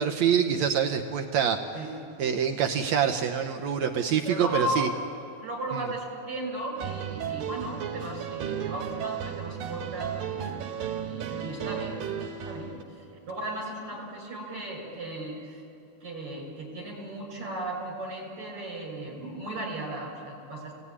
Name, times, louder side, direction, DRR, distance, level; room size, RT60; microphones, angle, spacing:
voice 1, 0.0-1.6 2.2-4.9, right 8 dB, 85° right, 4 dB, 1.5 m, -25 dB
voice 2, 4.1-4.8 5.4-10.5 11.0-12.0 12.4-15.6 16.0-20.8, right 1 dB, 35° right, 0 dB, 7.3 m, -36 dB
sound 1, 6.8-12.8, right 8 dB, 70° right, 3.2 m, -34 dB
29.5 x 19.0 x 9.7 m, 2.6 s
omnidirectional pair, 4.6 m